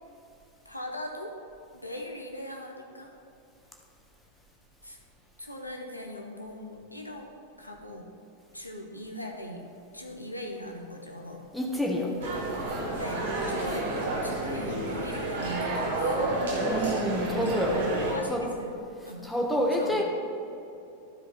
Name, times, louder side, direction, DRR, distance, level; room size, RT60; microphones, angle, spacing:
voice 1, 0.6-1.3 1.8-3.2 4.8-5.0 5.4-7.3 7.6-8.1 8.5-9.7 9.9-11.5 13.0-16.7 18.1-18.7 19.1-19.3 19.7-20.0, left 1 dB, 85° left, 1 dB, 0.9 m, -40 dB
voice 2, 11.5-12.1 16.6-17.8 18.3-18.4 19.2-20.0, equal, 5° left, -2 dB, 1.5 m, -28 dB
sound 1, 12.2-18.1, right 2 dB, 60° right, 1.8 m, -30 dB
12.5 x 5.0 x 4.2 m, 2.8 s
figure-of-eight pair, 90°, 0 cm